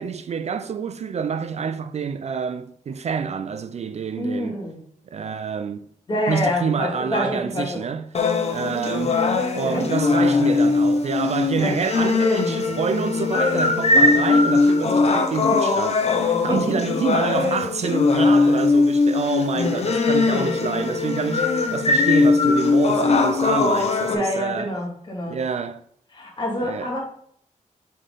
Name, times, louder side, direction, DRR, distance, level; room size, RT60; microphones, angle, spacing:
voice 1, 0.0-4.6 5.1-5.9 6.3-8.1 8.5-9.2 9.6-24.7 25.3-25.8 26.6-26.9, right 6 dB, 55° right, 0.4 m, -27 dB
voice 2, 4.2-4.8 6.1-7.8 9.0-9.4 9.6-9.8 11.6-11.7 16.5-17.0 24.1-25.4 26.1-27.0, left 1 dB, 35° left, 2.3 m, -27 dB
sound 1, 8.1-24.1, left 3 dB, 50° left, 0.8 m, -20 dB
6.3 x 4.3 x 3.8 m
wide cardioid pair, 145°, 14 cm